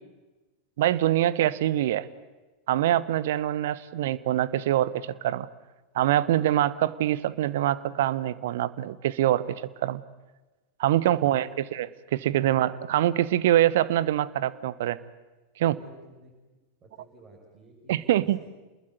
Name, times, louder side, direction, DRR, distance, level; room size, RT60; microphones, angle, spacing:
voice 1, 0.8-2.1 2.7-5.5 5.9-10.0 10.8-11.9 12.1-15.0 15.6-15.8 17.9-18.4, right 13 dB, 55° right, 18 dB, 1.1 m, -24 dB
voice 2, 11.0-11.5 15.7-16.3 16.8-18.1 18.4-18.5, right 1 dB, 25° right, -3 dB, 6.6 m, -52 dB
29.0 x 21.0 x 9.5 m, 1.2 s
figure-of-eight pair, 90°, 0 cm